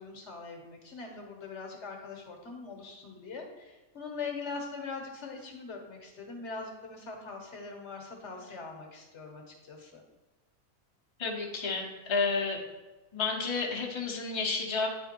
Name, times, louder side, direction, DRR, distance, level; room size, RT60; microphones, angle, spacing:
voice 1, 0.0-10.0, left 4 dB, 55° left, 2 dB, 1.3 m, -42 dB
voice 2, 11.2-12.6 13.1-14.9, left 4 dB, 25° left, -1 dB, 0.8 m, -31 dB
9.6 x 3.5 x 4.4 m, 1.2 s
omnidirectional pair, 1.6 m